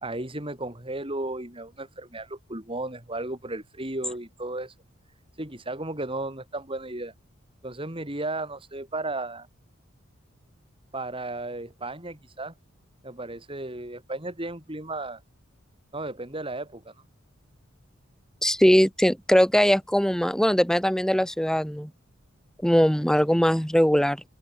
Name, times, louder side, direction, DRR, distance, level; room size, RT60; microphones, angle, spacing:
voice 1, 0.0-4.8 5.4-7.1 7.6-9.5 10.9-12.5 13.0-15.2 15.9-16.9, right 2 dB, 25° right, 4.4 m, -34 dB
voice 2, 18.4-21.9 22.6-24.2, equal, 5° left, 1.3 m, -21 dB
open air
head